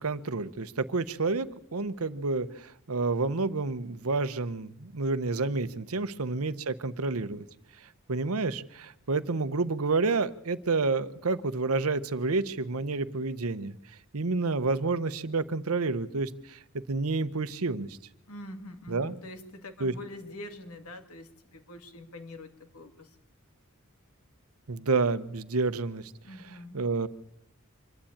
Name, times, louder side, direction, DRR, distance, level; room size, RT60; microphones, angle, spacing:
voice 1, 0.0-7.4 8.1-13.7 14.1-16.6 16.9-17.9 18.9-19.1 19.8-19.9 24.7-26.1 26.7-27.1, right 3 dB, 80° right, 14 dB, 0.9 m, -29 dB
voice 2, 18.3-23.2 26.2-26.8, left 1 dB, 90° left, 6 dB, 2.3 m, -45 dB
25.5 x 11.5 x 8.7 m, 0.80 s
head